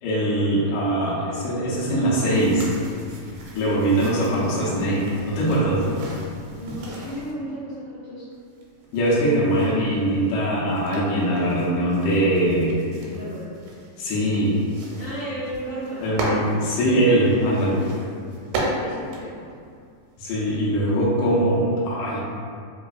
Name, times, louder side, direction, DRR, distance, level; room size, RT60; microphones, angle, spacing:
voice 1, 0.0-2.7 3.5-5.8 8.9-12.8 14.0-14.6 16.0-17.8 20.2-22.2, right 1 dB, 75° left, -7 dB, 1.8 m, -22 dB
sound 1, 2.3-7.3 8.3-20.2, right 1 dB, 90° right, 2.2 m, -36 dB
voice 2, 6.5-8.3 12.9-13.6 14.9-16.0 17.7-18.1 18.7-19.4, equal, 40° left, -13 dB, 1.6 m, -34 dB
5.1 x 2.4 x 2.3 m, 2.2 s
omnidirectional pair, 3.8 m